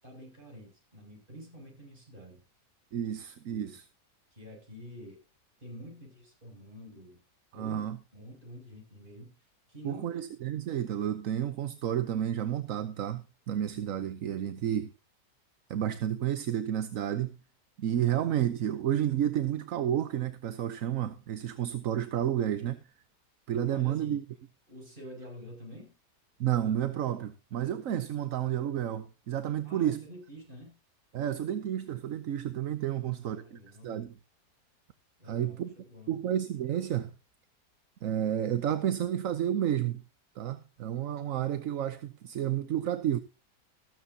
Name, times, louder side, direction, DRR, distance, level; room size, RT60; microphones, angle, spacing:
voice 1, 0.0-2.4 3.5-3.8 4.3-5.2 5.6-7.2 7.5-7.9 8.1-9.4 9.7-10.1 23.6-24.2 24.7-25.9 29.6-30.8 33.0-34.1 35.2-36.1, equal, 30° right, 7.6 m, -48 dB
voice 2, 2.9-3.8 7.5-8.0 9.8-14.9 15.7-17.4 17.8-22.8 23.5-24.2 26.4-30.0 31.1-34.1 35.2-35.7 36.1-37.1 38.0-40.0 40.4-43.2, right 10 dB, 60° right, 1.1 m, -31 dB
15.0 x 13.5 x 2.8 m
omnidirectional pair, 1.8 m